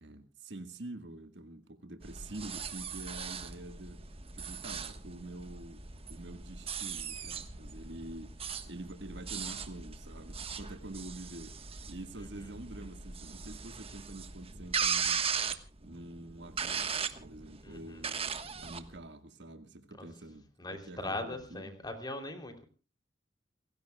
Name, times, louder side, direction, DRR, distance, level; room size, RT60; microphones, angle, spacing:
voice 1, 0.0-4.1 4.3-5.8 6.1-15.2 15.8-21.8, right 2 dB, 70° right, 1.6 m, -47 dB
sound 1, 2.0-19.0, right 6 dB, 35° right, 1.3 m, -38 dB
voice 2, 17.6-18.1 20.0-20.1 20.6-22.6, left 2 dB, 25° left, 3.2 m, -40 dB
29.5 x 16.5 x 2.3 m
head